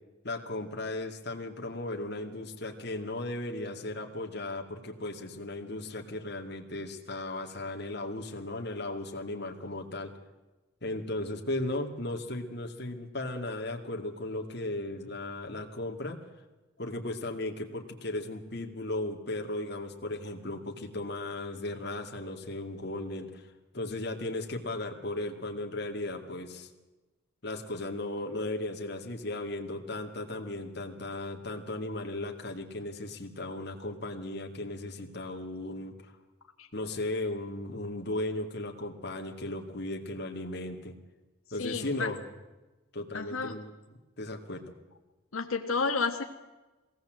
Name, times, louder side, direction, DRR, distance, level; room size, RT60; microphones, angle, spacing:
voice 1, 0.2-10.1 10.8-16.2 16.8-26.7 27.4-36.1 36.7-41.0 41.5-42.2 42.9-43.7 44.2-44.7, left 2 dB, 50° left, 2 dB, 2.4 m, -36 dB
voice 2, 41.6-42.1 43.1-43.6 45.3-46.2, left 4 dB, 90° left, 3 dB, 1.4 m, -31 dB
22.0 x 17.5 x 7.7 m, 1.1 s
head